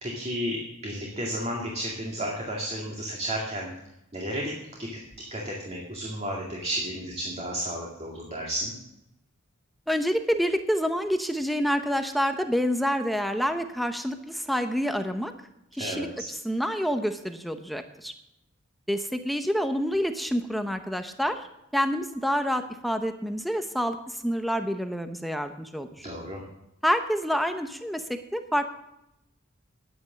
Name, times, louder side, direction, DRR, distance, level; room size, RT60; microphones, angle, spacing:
voice 1, 0.0-3.7 4.1-4.5 4.8-5.0 5.3-8.7 15.8-16.1 26.0-26.4, equal, 30° right, -2 dB, 2.2 m, -32 dB
voice 2, 9.9-15.3 15.7-18.1 18.9-21.5 21.7-26.1 26.8-28.0 28.3-28.7, equal, ahead, 7 dB, 0.7 m, -27 dB
10.5 x 9.6 x 7.4 m, 0.85 s
head